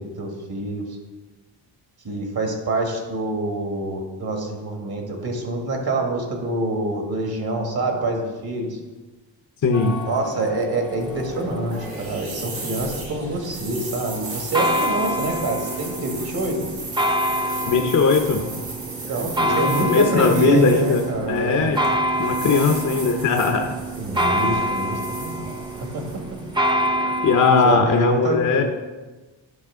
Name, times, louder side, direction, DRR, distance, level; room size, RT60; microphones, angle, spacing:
voice 1, 0.2-1.0 2.0-8.8 10.1-16.7 19.1-21.7 24.0-25.5 27.6-28.6, right 2 dB, 55° right, 2 dB, 1.9 m, -26 dB
voice 2, 9.6-10.0 17.7-18.6 19.4-21.8 22.2-23.7 27.2-28.6, left 4 dB, 40° left, 3 dB, 0.8 m, -19 dB
sound 1, 9.7-27.7, equal, 10° right, 0.8 m, -27 dB
sound 2, 10.8-27.0, right 3 dB, 80° right, 2.3 m, -36 dB
10.5 x 4.8 x 3.7 m, 1.2 s
cardioid pair, 80°, 46 cm